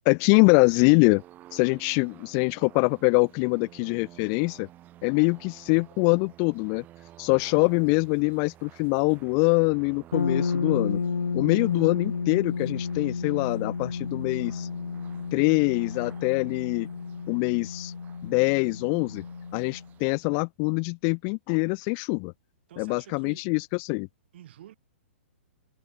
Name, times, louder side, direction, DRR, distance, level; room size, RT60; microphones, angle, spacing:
voice 1, 0.1-1.2 1.5-4.7 5.0-6.8 7.2-11.0 11.3-14.7 15.3-16.9 17.3-17.9 18.2-19.2 19.5-22.3 22.8-24.1, left 40 dB or more, 35° left, 0.4 m, -24 dB
sound 1, 1.1-20.2, right 13 dB, 25° right, 1.2 m, -52 dB
sound 2, 10.1-19.9, left 5 dB, 85° left, 0.5 m, -32 dB
voice 2, 11.5-11.9 22.7-23.5 24.3-24.8, right 12 dB, 55° right, 2.5 m, -49 dB
figure-of-eight pair, 120°, 7 cm